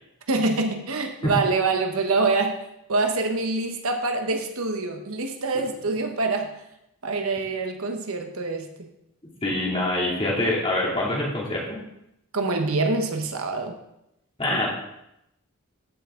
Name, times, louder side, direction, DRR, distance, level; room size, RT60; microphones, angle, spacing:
voice 1, 0.3-2.6 2.9-6.5 7.0-8.9 12.3-13.8, right 3 dB, 75° right, 4 dB, 1.1 m, -25 dB
voice 2, 9.4-11.8 14.4-14.7, left 1 dB, 25° left, -4 dB, 2.7 m, -25 dB
14.0 x 5.9 x 3.8 m, 0.83 s
head